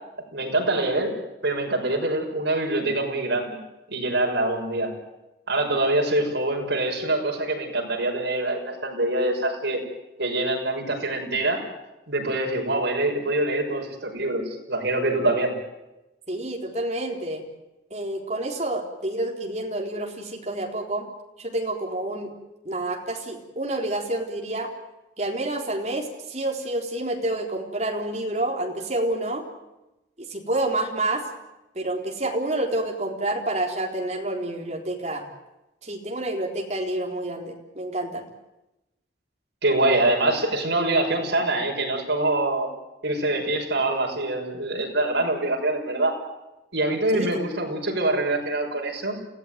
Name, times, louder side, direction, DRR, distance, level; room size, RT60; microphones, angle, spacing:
voice 1, 0.3-1.1 1.4-3.6 3.9-4.9 5.5-9.8 10.2-11.7 12.1-15.6 39.6-42.7 43.0-46.2 46.7-49.2, right 2 dB, 75° right, 0 dB, 6.3 m, -24 dB
voice 2, 16.3-17.4 17.9-21.1 21.4-22.3 22.6-24.7 25.2-29.4 30.2-31.2 31.7-35.2 35.8-38.3 47.1-47.3, right 1 dB, 35° right, 1 dB, 3.9 m, -28 dB
29.0 x 16.0 x 9.5 m, 0.97 s
head